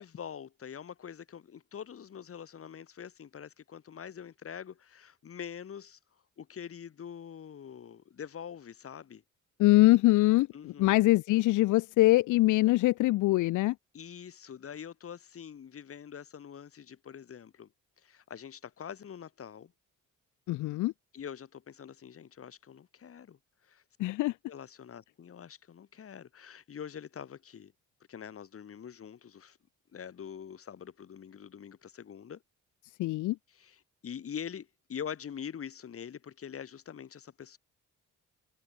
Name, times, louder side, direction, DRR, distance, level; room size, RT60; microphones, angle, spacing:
voice 1, 0.0-6.0 6.4-9.2 10.5-11.0 13.9-17.7 18.0-19.7 21.1-23.4 23.6-23.8 24.5-27.7 28.1-29.6 29.9-32.4 33.5-37.6, left 8 dB, 50° left, 2.3 m, -44 dB
voice 2, 9.6-13.7 20.5-20.9 24.0-24.3 33.0-33.4, left 18 dB, 80° left, 0.6 m, -23 dB
cardioid pair, 90°, 30 cm